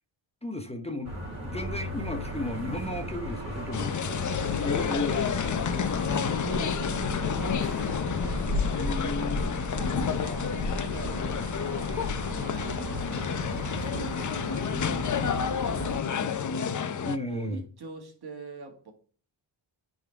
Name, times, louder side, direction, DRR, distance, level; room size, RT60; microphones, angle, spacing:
voice 1, 0.4-1.1 1.4-3.9 4.6-5.6 8.8-9.6 11.9-12.0 17.1-17.6, left 1 dB, 10° left, 0.9 m, -34 dB
sound 1, 1.0-16.0, left 1 dB, 30° right, 3.3 m, -35 dB
sound 2, 3.7-17.2, left 7 dB, 40° left, 0.7 m, -30 dB
voice 2, 6.1-8.4 9.8-12.1 12.4-13.4 13.9-16.9 17.3-18.9, right 2 dB, 50° right, 1.8 m, -43 dB
9.4 x 4.0 x 3.5 m
cardioid pair, 75°, 49 cm